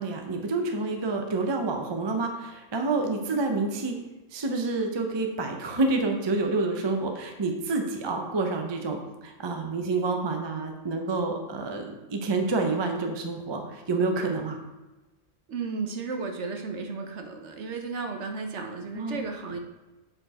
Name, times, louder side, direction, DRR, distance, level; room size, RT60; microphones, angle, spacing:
voice 1, 0.0-4.0 4.3-14.6 18.9-19.2, right 3 dB, 30° right, 3 dB, 0.6 m, -28 dB
voice 2, 15.5-19.6, right 4 dB, 60° right, 4 dB, 1.0 m, -34 dB
7.9 x 4.4 x 4.3 m, 1.1 s
omnidirectional pair, 1.4 m